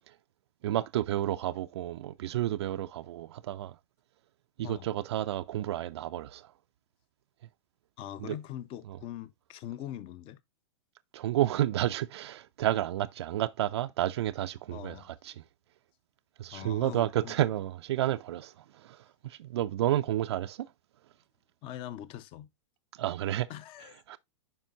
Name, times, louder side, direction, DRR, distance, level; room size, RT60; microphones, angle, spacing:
voice 1, 0.6-3.8 4.6-6.5 8.2-8.3 11.1-15.3 16.4-20.7 22.9-23.5 24.1-24.2, right 13 dB, 60° right, 0.4 m, -31 dB
voice 2, 8.0-10.4 14.7-15.1 16.5-17.4 21.6-22.5 23.5-24.0, left 12 dB, 35° left, 0.7 m, -42 dB
9.2 x 5.4 x 2.5 m
hypercardioid pair, 105°, 15 cm